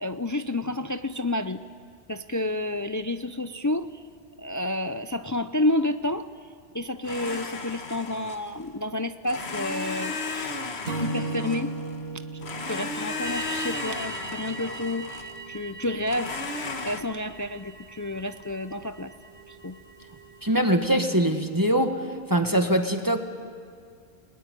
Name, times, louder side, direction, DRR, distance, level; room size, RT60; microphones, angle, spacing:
voice 1, 0.0-1.6 2.1-4.0 4.4-6.3 6.7-10.6 11.0-11.7 12.1-12.2 12.6-16.4 16.8-19.1 19.5-19.8, left 1 dB, 20° left, 10 dB, 0.5 m, -30 dB
Domestic sounds home sounds, 7.0-8.7 9.2-12.0 12.4-15.4 16.1-17.0, left 3 dB, 90° left, 1.7 m, -34 dB
Acoustic guitar / Strum, 10.8-14.2, right 2 dB, 75° right, 2.5 m, -34 dB
sound 1, 13.2-20.9, right 5 dB, 55° right, 1.9 m, -42 dB
voice 2, 20.4-22.0 22.3-23.2, right 1 dB, 20° right, 5 dB, 1.5 m, -22 dB
28.5 x 20.5 x 10.0 m, 2.3 s
omnidirectional pair, 1.1 m